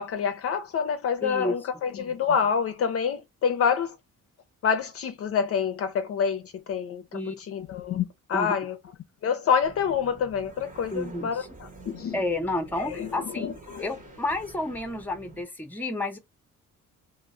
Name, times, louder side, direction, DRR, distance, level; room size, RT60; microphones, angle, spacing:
voice 1, 0.0-3.9 4.6-7.0 7.5-8.8 9.2-12.2 12.8-13.1 13.3-13.8, left 7 dB, 50° left, 0.4 m, -27 dB
voice 2, 1.2-1.6 7.1-7.4 8.3-8.5 10.9-11.5 12.1-13.5 13.8-16.2, left 2 dB, 5° left, 0.6 m, -30 dB
sound 1, 9.6-15.4, right 3 dB, 25° right, 0.8 m, -47 dB
2.1 x 2.0 x 3.6 m
cardioid pair, 90°, 30 cm